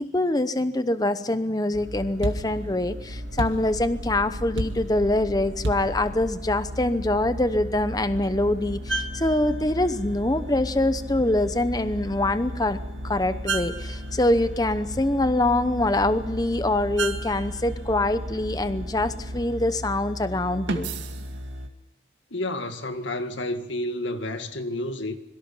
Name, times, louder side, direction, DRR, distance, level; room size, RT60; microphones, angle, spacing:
voice 1, 0.0-12.8 13.0-20.9, left 1 dB, 20° left, 0.8 m, -24 dB
sound 1, 1.7-21.7, right 1 dB, 90° right, 2.2 m, -33 dB
voice 2, 22.3-25.2, left 1 dB, 85° left, 2.0 m, -30 dB
26.0 x 23.0 x 5.6 m
head